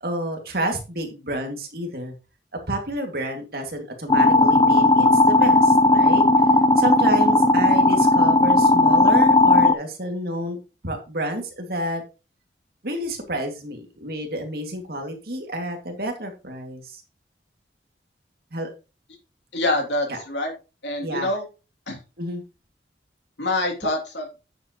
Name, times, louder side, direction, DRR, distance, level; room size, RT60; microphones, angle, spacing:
voice 1, 0.0-2.1 2.7-6.2 6.8-10.6 10.8-12.0 12.8-17.0 18.5-18.7 20.1-20.2 21.0-21.3 22.2-22.4, right 1 dB, 60° right, 3 dB, 2.3 m, -29 dB
sound 1, 4.1-9.7, left 2 dB, 25° left, 0.6 m, -16 dB
voice 2, 19.5-20.5 20.8-21.4 21.9-22.0 23.4-24.4, left 2 dB, 90° left, 2 dB, 3.0 m, -25 dB
9.3 x 7.3 x 3.0 m, 0.30 s
head